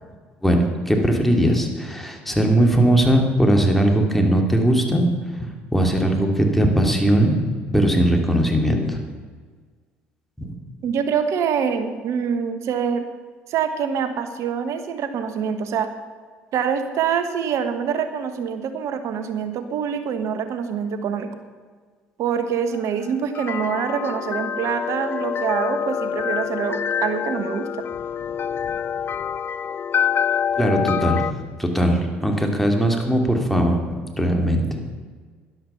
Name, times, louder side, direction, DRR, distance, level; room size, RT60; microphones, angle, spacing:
voice 1, 0.4-5.0 5.4-7.3 7.7-9.0 10.4-10.5 30.6-31.2 31.6-34.8, right 1 dB, 5° left, 2 dB, 2.8 m, -19 dB
voice 2, 10.8-13.1 13.5-15.9 16.5-21.3 22.2-27.8, right 7 dB, 60° right, 9 dB, 1.2 m, -25 dB
sound 1, 22.7-31.3, left 8 dB, 40° left, 0.6 m, -26 dB
13.0 x 10.5 x 5.7 m, 1.5 s
hypercardioid pair, 55°, 6 cm